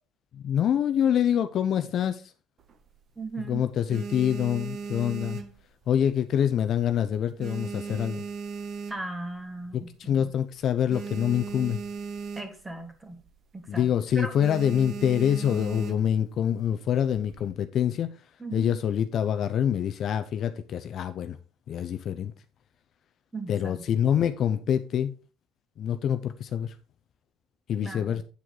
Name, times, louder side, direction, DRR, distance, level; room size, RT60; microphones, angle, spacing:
voice 1, 0.3-2.2 3.4-5.4 5.9-8.2 9.7-11.8 13.7-18.1 18.5-21.4 21.7-22.3 23.5-25.1 25.8-26.7 27.7-28.2, left 9 dB, 40° left, 0.6 m, -26 dB
sound 1, 2.6-3.3 3.7-6.2 6.5-6.9 7.2-9.4 9.9-10.0 10.1-10.3 10.6-12.8 13.1-13.4 13.7-13.9 14.4-16.2 16.9-17.5, right 5 dB, 35° right, 1.0 m, -37 dB
voice 2, 3.2-3.6 8.9-10.3 12.4-13.2 13.5-13.9 14.1-14.3 18.4-18.8 23.3-23.8 27.8-28.2, right 2 dB, 10° right, 1.5 m, -37 dB
8.3 x 7.6 x 3.9 m
cardioid pair, 165°, 0 cm